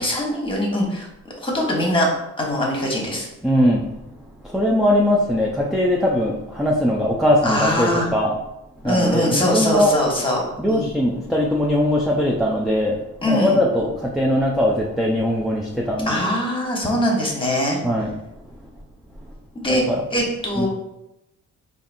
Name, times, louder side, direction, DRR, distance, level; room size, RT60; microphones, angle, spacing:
voice 1, 0.0-2.1 2.4-3.3 7.4-8.1 8.8-10.4 10.7-10.9 13.2-13.6 16.0-17.8 19.6-19.8 20.1-20.7, left 1 dB, 15° left, -1 dB, 1.1 m, -22 dB
voice 2, 3.4-3.9 4.4-8.3 8.8-9.9 10.6-16.3 17.8-18.1 19.9-20.0 20.6-20.7, left 1 dB, ahead, -3 dB, 0.4 m, -20 dB
4.0 x 2.6 x 2.6 m, 0.90 s
cardioid pair, 90°, 30 cm